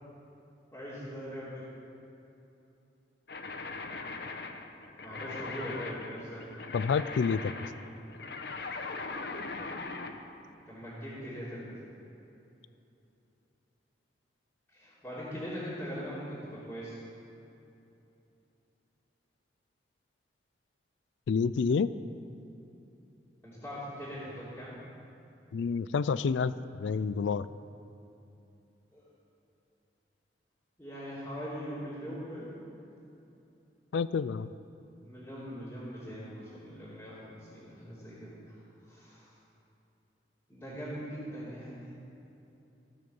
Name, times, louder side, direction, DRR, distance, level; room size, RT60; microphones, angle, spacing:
voice 1, 0.7-1.6 5.0-6.5 10.7-11.7 14.7-17.0 23.4-24.8 28.9-29.1 30.8-32.7 35.0-38.4 38.9-39.3 40.5-42.0, equal, 10° left, -13 dB, 3.1 m, -41 dB
sound 1, 3.3-10.2, left 3 dB, 60° left, 0.8 m, -40 dB
voice 2, 6.7-7.5 21.3-21.9 25.5-26.5 26.8-27.5 33.9-34.5, left 5 dB, 90° left, 15 dB, 0.4 m, -28 dB
16.5 x 6.7 x 7.0 m, 2.9 s
head